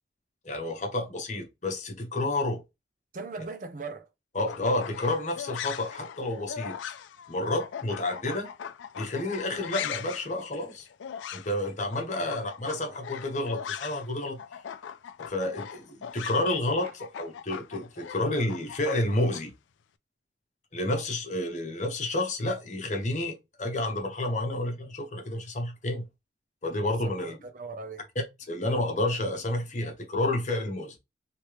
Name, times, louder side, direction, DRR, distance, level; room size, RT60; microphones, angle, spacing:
voice 1, 0.4-2.6 4.3-6.8 7.3-8.5 9.0-10.9 11.3-14.4 15.2-19.5 20.7-26.1 26.6-27.4 28.5-30.9, left 1 dB, 40° left, 0.9 m, -30 dB
voice 2, 3.1-4.1 12.2-12.4 27.0-28.1, right 3 dB, 45° right, 0.6 m, -39 dB
sound 1, 4.4-14.1 14.4-19.4, left 8 dB, 85° left, 0.4 m, -40 dB
3.2 x 2.9 x 3.0 m
head